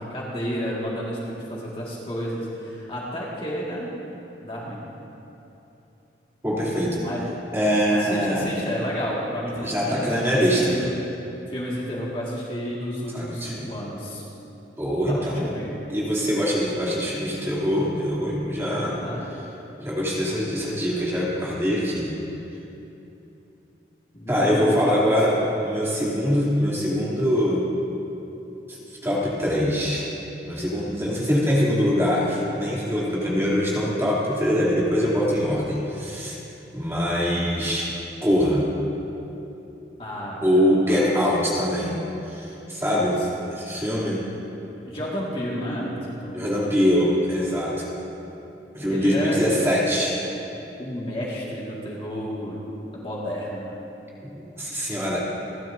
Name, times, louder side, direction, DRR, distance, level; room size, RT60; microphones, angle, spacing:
voice 1, 0.0-3.9 4.4-4.8 7.0-7.2 7.9-10.9 11.5-14.2 15.1-15.7 18.8-19.3 24.1-25.4 40.0-41.1 42.8-43.3 44.8-46.4 48.8-49.4 50.8-52.6 52.9-53.8, equal, 30° left, -5 dB, 2.0 m, -31 dB
voice 2, 6.4-7.0 7.5-8.4 9.6-10.7 13.1-13.7 14.8-15.5 15.9-19.0 19.8-22.1 24.3-27.6 28.7-28.8 29.0-30.1 30.4-36.4 36.7-37.9 38.2-38.7 40.4-41.9 42.3-43.2 43.6-44.2 46.3-47.9 48.7-50.2 54.3-55.3, equal, 15° right, -7 dB, 3.0 m, -23 dB
28.5 x 12.0 x 2.7 m, 2.9 s
head